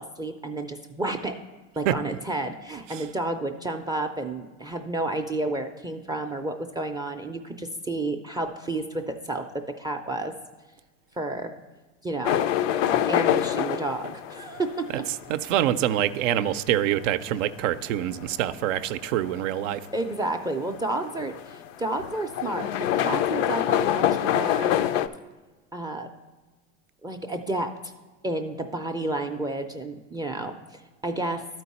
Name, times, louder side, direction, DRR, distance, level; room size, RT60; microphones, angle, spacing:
voice 1, 0.0-1.4 1.8-10.3 11.2-11.5 12.0-12.4 13.1-15.1 19.9-24.8 25.7-26.1 27.0-27.9 28.2-31.5, right 2 dB, 10° right, 7 dB, 0.3 m, -31 dB
sound 1, 12.2-25.1, left 11 dB, 80° left, 0.5 m, -26 dB
voice 2, 14.9-19.8, right 12 dB, 85° right, 13 dB, 0.5 m, -26 dB
12.0 x 4.6 x 4.1 m, 1.2 s
supercardioid pair, 100°, 37 cm